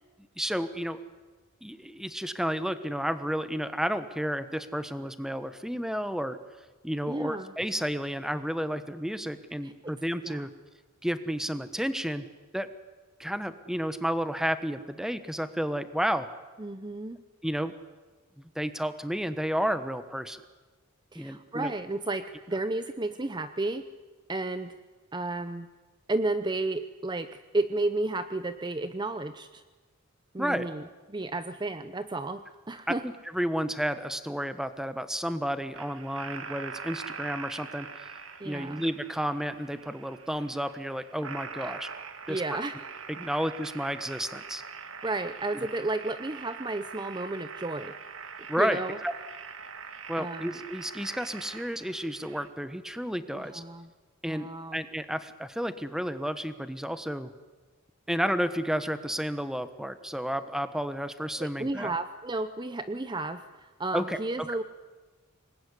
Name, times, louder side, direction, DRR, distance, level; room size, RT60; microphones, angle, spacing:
voice 1, 0.4-1.0 1.6-6.4 6.8-10.5 11.0-12.3 12.5-12.7 13.2-16.3 17.4-17.7 18.4-20.4 21.1-21.7 30.4-30.6 32.9-38.1 38.4-41.9 42.3-42.4 43.1-44.6 45.5-45.7 48.5-49.1 50.1-53.6 54.2-57.3 58.1-61.9 63.9-64.2, equal, ahead, 11 dB, 1.2 m, -31 dB
voice 2, 7.1-7.5 9.6-9.9 10.2-10.5 16.6-17.2 21.1-23.8 24.3-24.8 25.1-25.7 26.1-29.6 30.3-33.0 38.4-38.8 42.3-42.8 45.0-47.9 48.6-49.0 50.2-50.6 53.3-53.9 54.3-54.8 61.4-64.6, right 2 dB, 20° right, 10 dB, 0.7 m, -32 dB
sound 1, 35.7-52.5, right 5 dB, 70° right, 1.9 m, -43 dB
26.0 x 21.0 x 9.9 m, 1.3 s
head